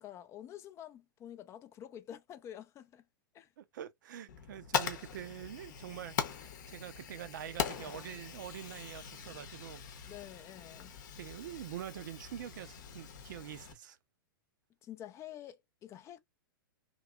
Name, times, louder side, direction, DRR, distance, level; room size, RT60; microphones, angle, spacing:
voice 1, 0.0-3.0 3.3-3.5 7.8-8.2 10.0-10.9 14.8-16.2, left 11 dB, 25° left, 0.4 m, -49 dB
voice 2, 3.6-10.1 11.2-14.0, right 11 dB, 60° right, 0.5 m, -45 dB
Fire, 4.3-13.7, left 8 dB, 55° left, 0.8 m, -41 dB
3.0 x 2.8 x 2.3 m
figure-of-eight pair, 105°, 12 cm